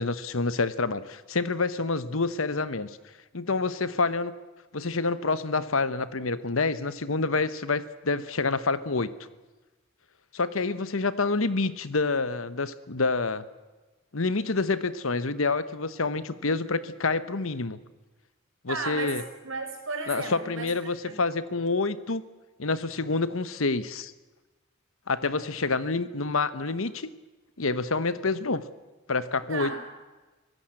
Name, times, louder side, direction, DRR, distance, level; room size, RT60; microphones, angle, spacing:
voice 1, 0.0-2.9 3.3-4.3 4.7-9.1 10.3-13.4 14.1-17.8 18.6-19.2 20.1-22.2 22.6-24.1 25.1-27.1 27.6-28.6 29.1-29.7, left 3 dB, 75° left, 15 dB, 1.1 m, -27 dB
voice 2, 18.7-19.2 19.4-21.2 29.5-29.8, right 3 dB, 65° right, 3 dB, 5.4 m, -34 dB
25.0 x 16.5 x 7.8 m, 1.2 s
head